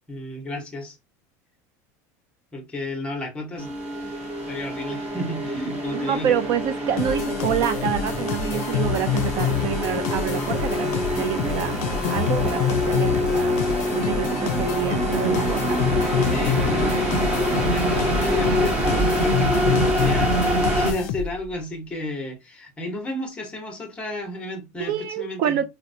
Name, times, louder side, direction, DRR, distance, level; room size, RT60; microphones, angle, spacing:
voice 1, 0.1-1.0 2.5-3.7 4.0-4.2 4.5-6.3 11.4-11.7 16.2-25.6, left 1 dB, 15° left, 0.8 m, -33 dB
sound 1, 3.6-20.9, equal, 15° right, 0.9 m, -25 dB
voice 2, 5.9-11.7 12.1-13.5 13.9-15.8 24.8-25.6, right 9 dB, 45° right, 0.4 m, -27 dB
sound 2, 7.0-21.5, left 8 dB, 65° left, 0.5 m, -27 dB
4.1 x 2.0 x 2.6 m
supercardioid pair, 160°, 8 cm